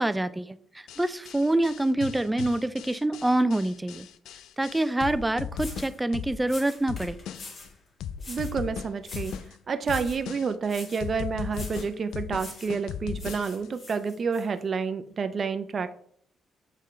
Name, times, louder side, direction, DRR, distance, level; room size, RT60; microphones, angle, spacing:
voice 1, 0.0-4.1 4.6-7.2, right 1 dB, 10° right, 13 dB, 0.4 m, -26 dB
sound 1, 0.9-6.5 6.9-7.7 8.0-9.5 9.9-10.7 11.0-13.7, left 8 dB, 85° left, 0.4 m, -37 dB
sound 2, 5.1-5.2 5.5-6.0 6.4-7.7 8.2-8.6 9.0-9.5 9.8-10.3 10.7-11.1 11.5-11.9 12.3-12.8 13.1-14.4, left 3 dB, 45° left, 1.7 m, -44 dB
voice 2, 8.3-9.3 9.7-16.0, right 5 dB, 45° right, 10 dB, 0.7 m, -29 dB
8.5 x 3.7 x 3.3 m, 0.63 s
cardioid pair, 90°, 0 cm